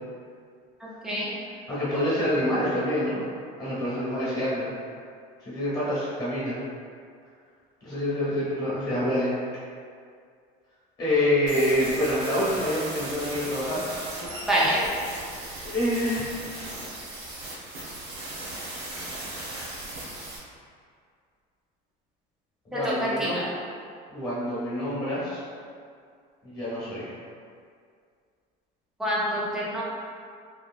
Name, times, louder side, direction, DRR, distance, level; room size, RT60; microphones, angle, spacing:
voice 1, 1.0-1.3 14.5-14.8 22.7-23.5 29.0-29.8, equal, 5° right, -8 dB, 0.4 m, -26 dB
voice 2, 1.7-3.2 3.6-4.7 5.4-6.6 7.8-9.3 11.0-13.9 15.6-16.5 22.6-23.4 24.1-25.4 26.4-27.1, left 1 dB, 20° left, -9 dB, 1.0 m, -27 dB
sound 1, 11.5-20.4, right 1 dB, 65° right, 0.8 m, -37 dB
2.8 x 2.8 x 2.3 m, 2.2 s
cardioid pair, 180°, 19 cm